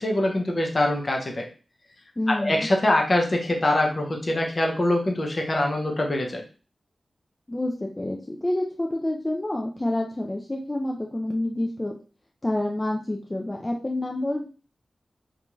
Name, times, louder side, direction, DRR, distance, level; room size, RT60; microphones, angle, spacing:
voice 1, 0.0-1.4 2.4-6.4, left 1 dB, 45° left, 1 dB, 0.7 m, -23 dB
voice 2, 2.2-2.7 7.5-11.9 12.4-14.5, left 1 dB, 25° left, 0 dB, 0.4 m, -28 dB
2.5 x 2.3 x 3.0 m, 0.37 s
cardioid pair, 65°, 0 cm